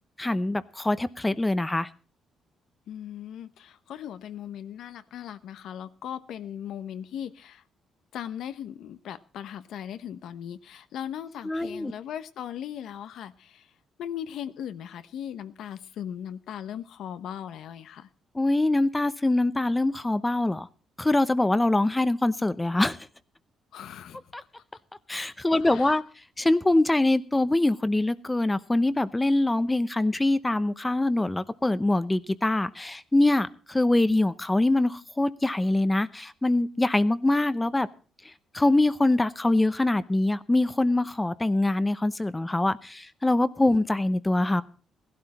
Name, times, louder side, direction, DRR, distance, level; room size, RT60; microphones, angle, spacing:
voice 1, 0.2-1.9 11.4-11.9 18.3-20.7 21.0-23.0 24.3-24.4 25.1-26.0 26.4-37.9 38.5-44.6, left 2 dB, 15° left, 15 dB, 0.8 m, -24 dB
voice 2, 2.9-7.6 8.1-13.7 14.0-18.1 23.7-24.2 25.6-26.0, left 9 dB, 75° left, 12 dB, 0.9 m, -38 dB
16.0 x 12.0 x 4.2 m, 0.38 s
cardioid pair, 90°, 0 cm